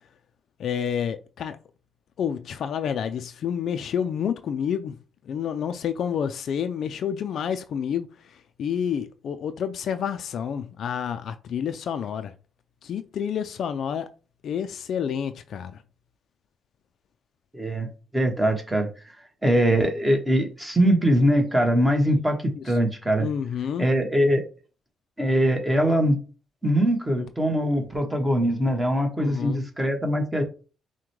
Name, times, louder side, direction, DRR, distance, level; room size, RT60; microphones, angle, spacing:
voice 1, 0.6-1.6 2.2-5.0 5.3-12.3 12.8-14.1 14.4-15.8 22.6-22.7 23.2-23.9 29.2-29.6, left 8 dB, 65° left, 0.3 m, -29 dB
voice 2, 17.5-17.9 18.1-18.9 19.4-22.4 22.6-23.3 23.8-24.4 25.2-26.2 26.6-30.4, equal, 10° right, 1.1 m, -22 dB
5.9 x 2.2 x 3.1 m
cardioid pair, 90°, 0 cm